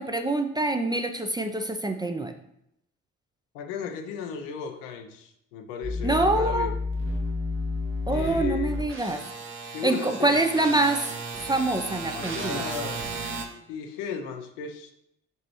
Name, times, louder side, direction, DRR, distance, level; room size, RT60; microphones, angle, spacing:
voice 1, 0.0-2.3 6.0-6.7 8.1-9.2 9.8-11.0 11.4-12.6, right 2 dB, 10° right, 5 dB, 0.4 m, -25 dB
voice 2, 3.5-6.7 8.1-8.8 9.7-10.4 12.1-13.0 13.7-14.9, left 7 dB, 75° left, 6 dB, 0.6 m, -35 dB
sound 1, 5.8-13.5, left 1 dB, 35° right, 0.8 m, -32 dB
5.4 x 3.0 x 3.0 m, 0.77 s
hypercardioid pair, 45°, 37 cm